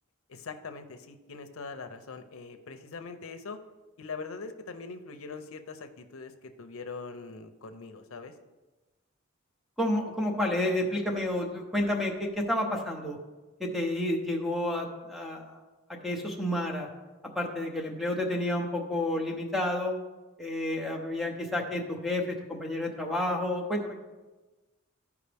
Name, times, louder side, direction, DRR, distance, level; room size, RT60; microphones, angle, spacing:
voice 1, 0.3-3.6 4.0-8.3, left 4 dB, 85° left, 8 dB, 0.7 m, -42 dB
voice 2, 9.8-13.2 13.6-15.6 15.9-16.9 17.3-19.9 20.4-24.0, left 1 dB, ahead, 1 dB, 0.9 m, -30 dB
14.0 x 4.8 x 3.4 m, 1.2 s
head